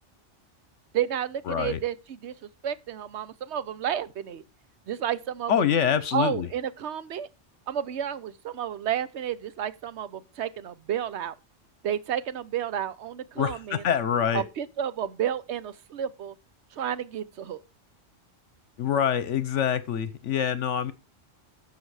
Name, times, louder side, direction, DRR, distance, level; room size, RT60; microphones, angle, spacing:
voice 1, 0.9-2.3 2.6-4.4 4.9-5.6 6.1-7.3 7.7-11.3 11.8-13.8 14.3-16.3 16.7-17.6, right 9 dB, 65° right, 1.0 m, -31 dB
voice 2, 1.5-1.8 5.5-6.5 13.4-14.4 18.8-20.9, left 8 dB, 70° left, 1.1 m, -25 dB
12.0 x 6.9 x 4.8 m
omnidirectional pair, 1.3 m